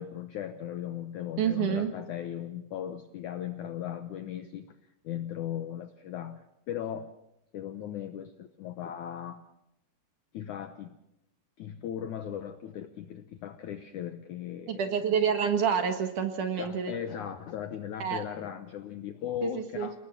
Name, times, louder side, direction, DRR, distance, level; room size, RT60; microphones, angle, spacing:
voice 1, 0.0-4.8 5.0-7.1 7.5-9.4 10.3-11.0 11.6-15.0 16.6-20.0, left 10 dB, 80° left, 9 dB, 1.8 m, -38 dB
voice 2, 1.4-1.9 14.7-16.9 18.0-18.2 19.4-19.9, right 7 dB, 60° right, 6 dB, 2.7 m, -28 dB
27.5 x 19.0 x 6.0 m, 0.85 s
omnidirectional pair, 4.8 m